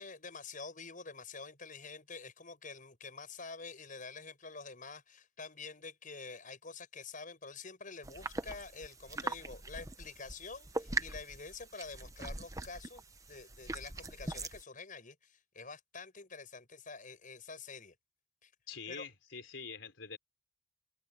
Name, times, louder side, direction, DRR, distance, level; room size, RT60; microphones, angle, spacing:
voice 1, 0.0-13.0 13.3-18.0 18.4-18.5 18.9-19.1, left 4 dB, 45° left, 7.1 m, -47 dB
sound 1, 8.0-14.6, right 2 dB, 20° right, 1.1 m, -41 dB
voice 2, 18.7-20.2, left 5 dB, 90° left, 3.8 m, -45 dB
head